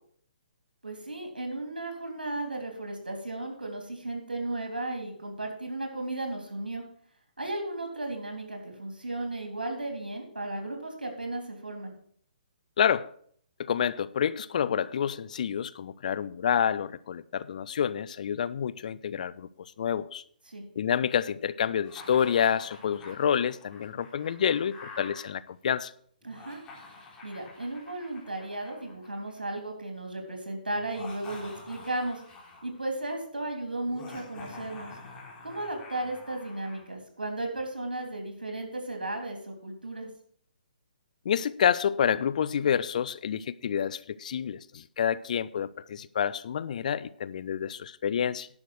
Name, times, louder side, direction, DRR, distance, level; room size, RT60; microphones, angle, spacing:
voice 1, 0.8-6.8 7.4-11.9 20.5-20.7 26.2-26.6 27.2-32.2 32.6-35.0 35.4-40.1, right 2 dB, 85° right, 3.3 m, -35 dB
voice 2, 12.8-13.1 13.6-20.2 20.8-25.9 41.3-48.5, left 8 dB, 55° left, 0.5 m, -28 dB
Laughter, 21.8-25.2 26.2-29.5 30.8-32.8 33.9-36.8, left 3 dB, 20° left, 3.3 m, -47 dB
10.5 x 6.4 x 6.2 m
figure-of-eight pair, 135°, 5 cm